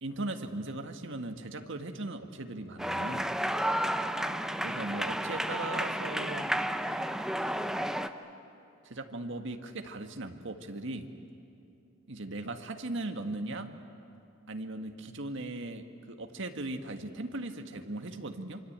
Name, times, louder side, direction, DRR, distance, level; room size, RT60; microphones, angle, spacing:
voice 1, 0.0-3.3 4.6-6.5 8.8-11.1 12.1-13.7 14.5-18.6, right 2 dB, 65° right, 6 dB, 1.7 m, -38 dB
sound 1, 2.8-8.1, equal, 5° right, 0.8 m, -32 dB
26.0 x 24.5 x 8.8 m, 2.6 s
head